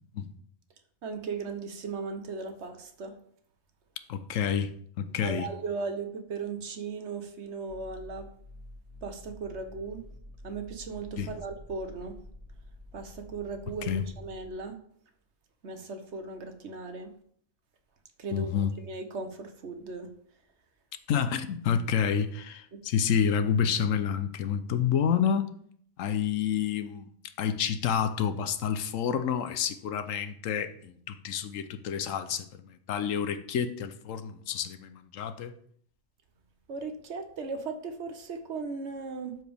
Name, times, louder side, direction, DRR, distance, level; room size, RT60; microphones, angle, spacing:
voice 1, 1.0-3.1 5.2-8.3 9.0-10.0 10.4-12.1 12.9-13.9 14.2-14.7 15.6-17.1 18.2-18.6 18.9-20.1 22.7-22.8 36.7-39.4, right 4 dB, 60° right, 1.1 m, -37 dB
voice 2, 4.1-4.7 5.0-5.5 11.2-11.4 13.8-14.1 18.3-18.8 21.1-25.5 26.0-27.1 27.4-35.5, left 7 dB, 75° left, 1.0 m, -29 dB
sound 1, 7.7-14.5, left 1 dB, 30° right, 3.4 m, -49 dB
12.0 x 4.7 x 3.5 m
omnidirectional pair, 1.4 m